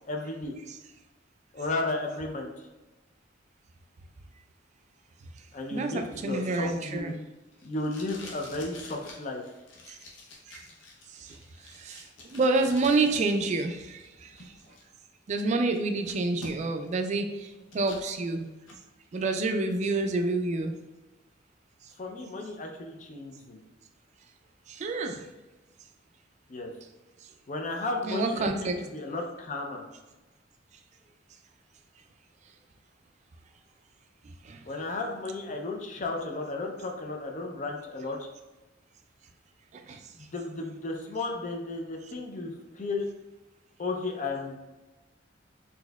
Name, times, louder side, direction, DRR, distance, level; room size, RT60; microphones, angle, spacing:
voice 1, 0.0-0.5 1.5-2.5 5.5-7.1 7.6-9.4 22.0-23.6 26.5-26.7 27.5-29.8 34.6-38.3 40.2-43.1 43.8-44.6, left 2 dB, 40° left, 2 dB, 0.5 m, -34 dB
voice 2, 5.7-7.1 11.2-11.4 11.8-12.0 12.3-14.3 15.3-18.5 19.1-20.8 24.7-25.2 28.1-28.8 34.4-34.6 39.9-40.0, right 3 dB, 40° right, 6 dB, 0.3 m, -28 dB
Packing tape duct tape, 6.0-13.5 13.8-14.8 15.3-15.4 15.7-16.9 17.2-18.0 18.5-18.8, left 2 dB, 90° left, 0.7 m, -48 dB
4.1 x 2.7 x 2.2 m, 1.1 s
head